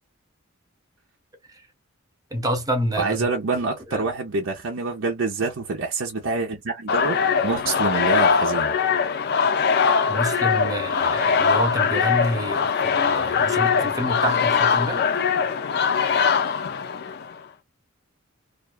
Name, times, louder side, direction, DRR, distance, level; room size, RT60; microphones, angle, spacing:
voice 1, 2.3-3.3 3.9-4.1 10.1-15.1, equal, 20° right, 0.7 m, -28 dB
voice 2, 3.0-8.7, right 3 dB, 80° right, 0.6 m, -26 dB
sound 1, 6.9-17.3, left 6 dB, 50° left, 0.4 m, -21 dB
2.5 x 2.2 x 2.3 m
head